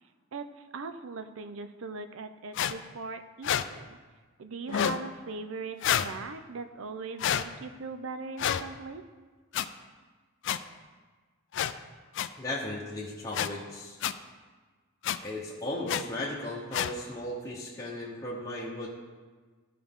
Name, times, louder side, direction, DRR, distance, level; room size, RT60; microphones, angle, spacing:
voice 1, 0.3-4.0 4.4-9.0, right 4 dB, 65° right, 9 dB, 0.5 m, -40 dB
sound 1, 2.5-2.7 3.4-3.6 4.7-5.0 5.8-6.1 7.2-7.4 8.4-8.6 9.5-9.6 10.4-10.6 11.5-11.7 12.1-12.3 13.3-13.5 14.0-14.1 15.0-15.2 15.9-16.0 16.7-16.9, left 9 dB, 60° left, 0.3 m, -28 dB
voice 2, 12.4-14.0 15.2-18.9, left 1 dB, 15° left, -6 dB, 1.0 m, -36 dB
13.5 x 4.7 x 3.7 m, 1.4 s
head